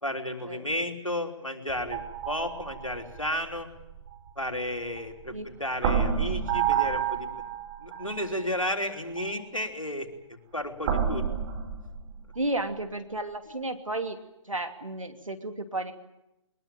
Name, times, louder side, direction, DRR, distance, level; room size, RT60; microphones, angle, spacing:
voice 1, 0.0-3.7 4.4-5.3 5.6-7.3 7.8-10.1 10.5-11.2, left 1 dB, 90° left, 3 dB, 3.5 m, -32 dB
sound 1, 1.7-5.3 5.8-8.3 9.2-9.3 10.8-12.7, right 8 dB, 35° right, 4.4 m, -30 dB
voice 2, 12.3-15.9, right 2 dB, 80° right, 6 dB, 2.7 m, -33 dB
22.0 x 20.5 x 8.9 m, 0.89 s
figure-of-eight pair, 130°, 17 cm